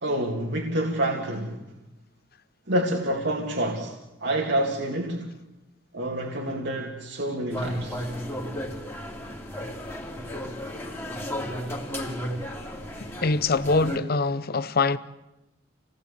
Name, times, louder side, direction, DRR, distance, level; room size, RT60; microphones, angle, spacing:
voice 1, 0.0-1.7 2.7-5.3 5.9-8.0, right 1 dB, 60° right, 2.3 m, -28 dB
sound 1, 7.5-14.0, equal, 10° left, 3.0 m, -34 dB
voice 2, 13.2-15.0, left 3 dB, 55° left, 0.9 m, -23 dB
28.0 x 18.0 x 8.3 m
head